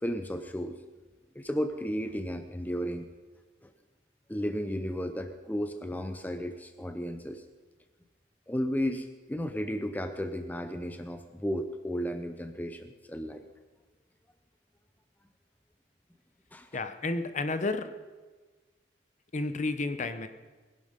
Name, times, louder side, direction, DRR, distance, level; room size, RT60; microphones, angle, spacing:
voice 1, 0.0-0.8 1.3-3.1 3.6-3.7 4.3-7.4 8.5-13.5 16.5-16.8, equal, 10° left, 8 dB, 0.6 m, -34 dB
voice 2, 16.7-17.9 19.3-20.3, left 3 dB, 40° left, 10 dB, 0.8 m, -31 dB
20.0 x 11.0 x 5.2 m, 1.3 s
head